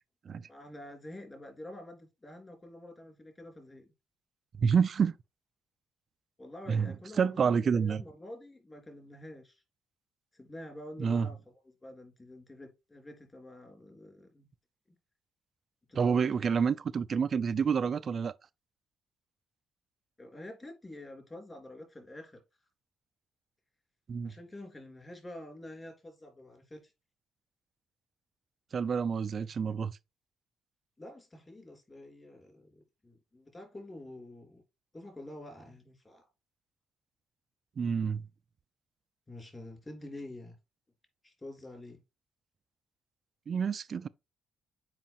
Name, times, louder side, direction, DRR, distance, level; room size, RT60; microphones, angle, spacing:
voice 1, 0.5-3.9 6.4-9.6 10.3-11.4 11.8-14.5 15.9-16.4 20.2-22.4 24.2-26.9 31.0-34.6 34.9-36.2 39.3-40.6 41.2-42.0, left 1 dB, 25° left, 3.3 m, -47 dB
voice 2, 4.6-5.1 6.7-8.0 11.0-11.3 15.9-18.3 24.1-24.3 28.7-30.0 37.8-38.2 43.5-44.1, right 6 dB, 50° right, 0.4 m, -28 dB
7.5 x 5.0 x 3.0 m
cardioid pair, 90°, 0 cm